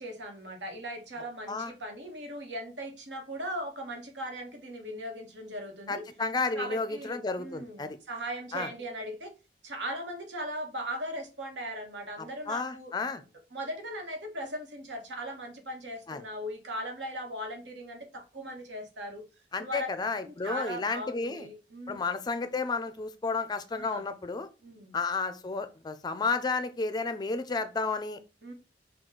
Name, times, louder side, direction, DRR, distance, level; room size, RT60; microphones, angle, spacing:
voice 1, 0.0-6.0 6.5-9.3 9.6-12.9 13.5-19.2 19.6-19.9 20.2-22.1 23.8-24.0 24.6-24.9 28.4-28.5, equal, 85° right, 1.3 m, -38 dB
voice 2, 5.9-8.0 8.5-8.7 12.5-13.2 16.1-16.2 19.5-21.5 21.9-24.5 24.9-28.2, left 4 dB, 25° left, 0.4 m, -32 dB
6.0 x 2.3 x 3.7 m
head